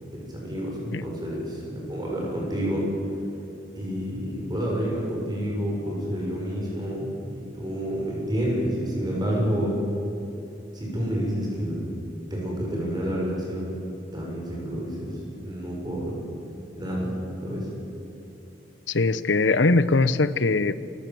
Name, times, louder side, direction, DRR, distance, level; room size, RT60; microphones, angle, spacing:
voice 1, 0.0-2.9 3.7-9.8 10.7-12.0 12.3-13.7 14.1-16.2 16.8-17.1 17.4-17.7, equal, 25° right, -2 dB, 6.6 m, -29 dB
voice 2, 18.9-20.8, left 3 dB, 90° left, 15 dB, 0.9 m, -21 dB
28.5 x 16.5 x 7.7 m, 2.9 s
head